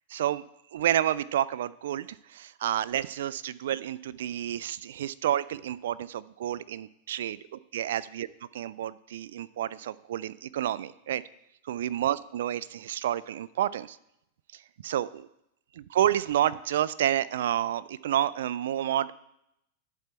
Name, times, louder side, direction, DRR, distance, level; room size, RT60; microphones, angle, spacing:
voice 1, 0.1-0.4 0.7-7.4 7.7-8.3 8.5-11.2 11.7-14.0 14.5-15.3 15.8-19.1, right 11 dB, 75° right, 18 dB, 0.3 m, -29 dB
11.0 x 4.6 x 6.8 m, 0.81 s
hypercardioid pair, 110°, 0 cm